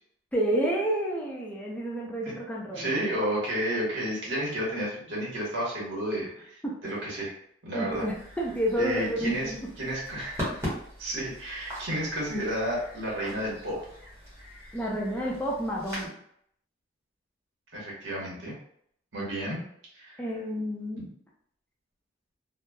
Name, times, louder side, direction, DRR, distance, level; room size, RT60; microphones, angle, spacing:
voice 1, 0.3-2.9 6.6-6.9 7.7-9.6 14.7-16.2 20.2-21.0, equal, 5° left, -3 dB, 0.4 m, -30 dB
voice 2, 2.7-7.3 7.6-8.0 8.8-9.5 9.8-10.6 11.0-13.8 17.7-18.5 19.1-19.6 19.9-20.2 21.0-21.1, right 1 dB, 80° right, -4 dB, 1.1 m, -31 dB
sound 1, 7.9-16.1, equal, 15° right, 0.9 m, -40 dB
3.0 x 2.0 x 2.2 m, 0.69 s
head